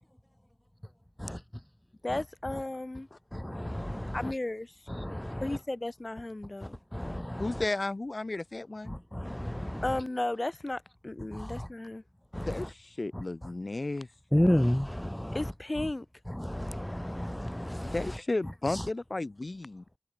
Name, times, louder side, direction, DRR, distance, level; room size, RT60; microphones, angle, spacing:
voice 1, 2.0-3.1 4.1-4.7 5.4-7.1 9.8-12.0 15.3-16.1, left 2 dB, 50° left, 7.1 m, -34 dB
voice 2, 3.3-4.3 4.9-5.6 6.6-7.6 8.8-10.0 11.3-11.7 12.3-12.7 13.1-13.5 14.3-15.5 15.8-15.9 16.3-18.2 18.7-18.9, equal, 15° left, 5.6 m, -32 dB
voice 3, 7.4-9.0 12.5-14.1 17.9-19.8, left 2 dB, 70° left, 5.7 m, -33 dB
wide cardioid pair, 50°, 0 cm